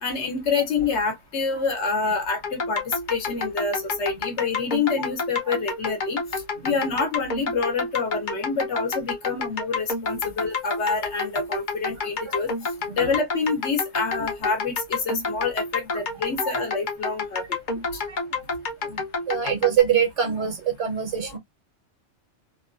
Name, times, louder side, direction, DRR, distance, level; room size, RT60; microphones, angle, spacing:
voice 1, 0.0-6.2 6.6-12.5 12.9-17.5 17.9-18.0 18.9-19.0, left 4 dB, 70° left, 1.1 m, -27 dB
sound 1, 2.4-19.8, left 4 dB, 45° left, 0.8 m, -29 dB
voice 2, 19.3-21.4, right 8 dB, 75° right, 1.2 m, -23 dB
2.9 x 2.2 x 2.4 m
omnidirectional pair, 1.3 m